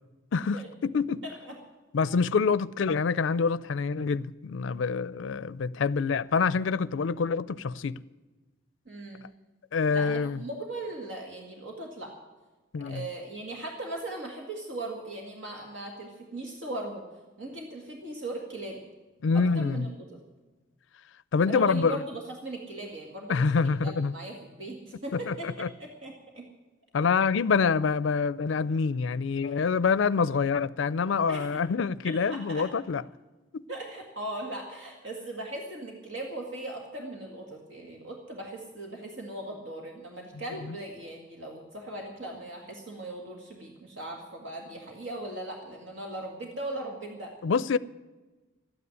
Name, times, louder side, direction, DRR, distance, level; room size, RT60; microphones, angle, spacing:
voice 1, 0.3-1.2 1.9-8.0 9.7-10.4 12.7-13.0 19.2-19.9 21.3-22.0 23.3-24.1 25.1-25.7 26.9-33.0 33.5-33.6 40.7-40.8 47.4-47.8, left 5 dB, 70° left, 0.4 m, -26 dB
voice 2, 1.2-1.6 8.9-9.2 9.9-12.1 12.8-17.0 17.4-18.8 19.3-20.2 21.5-26.4 31.3-31.5 32.0-32.7 33.7-47.3, right 1 dB, 70° right, 2.0 m, -39 dB
13.0 x 9.6 x 9.8 m
head